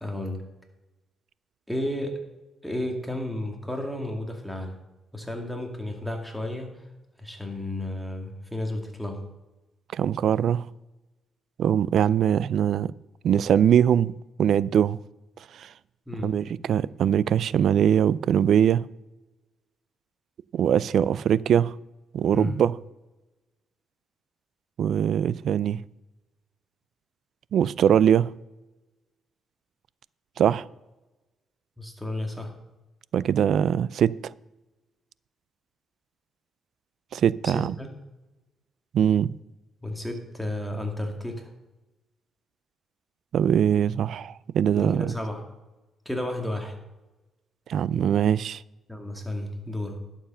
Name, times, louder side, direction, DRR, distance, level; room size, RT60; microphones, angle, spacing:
voice 1, 0.0-0.4 1.7-2.1 2.6-4.7 5.1-6.8 7.2-9.2 16.1-16.3 22.3-22.6 31.8-32.5 37.4-37.9 39.8-41.5 44.7-45.4 46.1-46.8 48.9-50.0, left 1 dB, ahead, 2.3 m, -32 dB
voice 2, 9.9-10.7 11.6-12.9 13.2-14.1 14.4-15.0 15.5-15.7 16.2-18.9 20.5-21.7 22.1-22.8 24.8-25.8 27.5-28.3 30.4-30.6 33.1-34.1 37.1-37.8 38.9-39.3 43.3-45.1 47.7-48.6, right 9 dB, 65° right, 0.3 m, -22 dB
11.5 x 7.2 x 5.6 m
cardioid pair, 90°, 0 cm